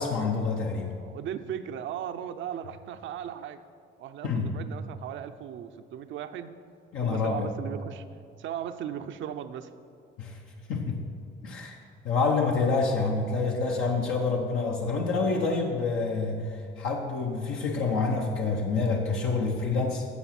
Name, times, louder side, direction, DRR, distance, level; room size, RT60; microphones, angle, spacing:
voice 1, 0.0-0.9 4.2-4.5 6.9-7.5 10.2-10.4 10.7-11.0 11.4-11.8 12.0-20.1, left 4 dB, 85° left, 0 dB, 1.1 m, -27 dB
voice 2, 1.0-3.6 4.0-6.5 7.0-8.0 8.4-9.7, right 9 dB, 75° right, 9 dB, 0.6 m, -37 dB
11.0 x 7.2 x 5.9 m, 2.3 s
cardioid pair, 90°, 20 cm